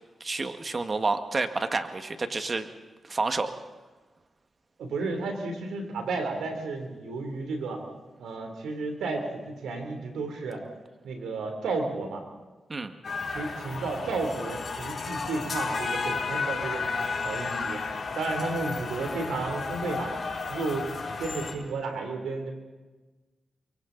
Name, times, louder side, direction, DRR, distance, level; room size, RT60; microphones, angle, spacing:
voice 1, 0.2-2.7 3.1-3.5 12.7-12.9, right 3 dB, 45° right, 8 dB, 1.7 m, -29 dB
voice 2, 4.8-7.8 8.2-10.6 11.0-12.2 13.3-17.8 18.2-20.1 20.5-20.9 21.2-22.5, right 3 dB, 90° right, 4 dB, 3.3 m, -32 dB
sound 1, 13.0-21.5, left 4 dB, 60° left, 4.1 m, -33 dB
29.5 x 23.5 x 4.0 m, 1.2 s
supercardioid pair, 50°, 0 cm